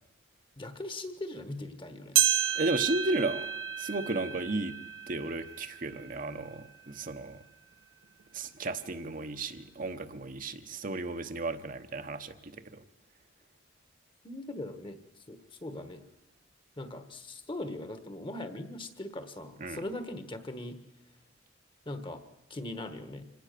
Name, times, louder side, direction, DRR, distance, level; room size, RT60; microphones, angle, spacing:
voice 1, 0.6-2.2 14.2-15.0 15.3-16.0 16.8-20.8 21.8-22.2 22.5-23.2, left 1 dB, 25° left, 10 dB, 1.4 m, -40 dB
sound 1, 2.1-6.8 7.3-7.4 8.2-8.3 9.2-9.3, right 11 dB, 90° right, 1.6 m, -31 dB
voice 2, 2.6-4.8 5.1-7.4 8.3-12.8 19.6-19.8, right 2 dB, 45° right, 7 dB, 1.0 m, -34 dB
25.5 x 18.5 x 6.8 m, 0.89 s
head